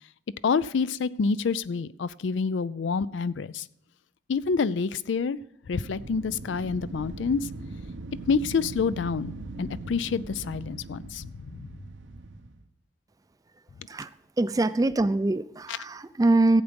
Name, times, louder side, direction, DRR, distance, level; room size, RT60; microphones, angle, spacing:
voice 1, 0.4-3.7 4.3-5.4 5.7-7.5 8.3-9.3 9.6-11.7, left 5 dB, 80° left, 17 dB, 0.4 m, -27 dB
Wind, 5.7-12.7, right 2 dB, 80° right, 0.8 m, -40 dB
voice 2, 13.9-16.6, right 2 dB, 20° right, 15 dB, 0.4 m, -24 dB
15.0 x 8.1 x 5.2 m, 0.72 s
head